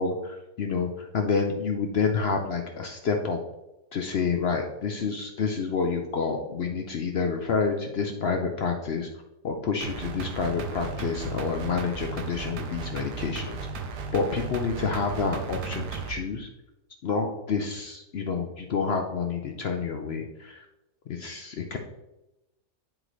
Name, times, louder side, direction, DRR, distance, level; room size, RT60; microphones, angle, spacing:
voice 1, 0.0-3.4 3.9-9.1 9.4-13.6 14.1-16.5 17.0-20.7 21.1-21.8, left 5 dB, 65° left, 3 dB, 0.6 m, -28 dB
sound 1, 9.8-16.1, right 4 dB, 75° right, 1.4 m, -35 dB
10.5 x 3.8 x 3.1 m, 0.94 s
omnidirectional pair, 1.8 m